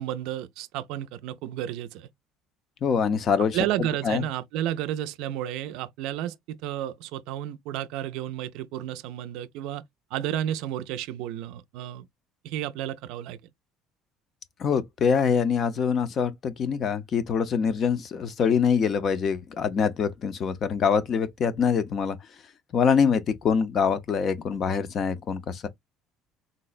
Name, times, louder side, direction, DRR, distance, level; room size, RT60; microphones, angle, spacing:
voice 1, 0.0-2.1 3.5-9.8 10.1-12.1 12.4-13.4, right 12 dB, 70° right, 0.3 m, -32 dB
voice 2, 2.8-3.6 4.0-4.2 14.6-22.2 22.7-25.7, left 6 dB, 35° left, 0.5 m, -24 dB
3.9 x 2.1 x 2.3 m
cardioid pair, 165°, 0 cm